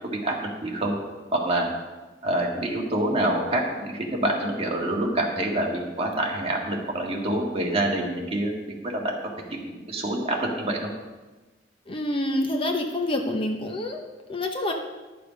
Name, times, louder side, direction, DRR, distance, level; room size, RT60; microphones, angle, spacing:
voice 1, 0.2-1.0 1.3-1.7 2.2-8.5 8.8-9.2 9.5-10.9, right 1 dB, 35° right, -1 dB, 1.8 m, -26 dB
voice 2, 11.9-14.7, left 1 dB, 30° left, 3 dB, 0.8 m, -27 dB
11.0 x 6.7 x 5.1 m, 1.2 s
head